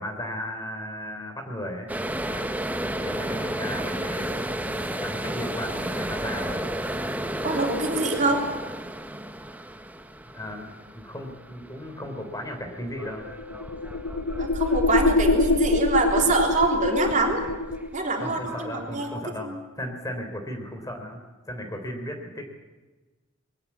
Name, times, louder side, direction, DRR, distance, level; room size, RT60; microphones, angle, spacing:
voice 1, 0.0-1.9 2.2-2.5 3.0-4.4 4.9-6.7 10.3-13.3 18.2-21.2 21.5-22.4, equal, 20° left, 5 dB, 3.5 m, -35 dB
sound 1, 1.9-16.7 17.0-17.5 17.8-19.2, right 1 dB, 10° right, 1.1 m, -33 dB
voice 2, 7.4-8.5 14.4-17.5 17.9-19.1 19.4-19.6, right 2 dB, 40° right, 2 dB, 3.6 m, -25 dB
sound 2, 13.0-18.0, left 2 dB, 80° left, 1.0 m, -24 dB
22.0 x 18.0 x 8.5 m, 1.2 s
head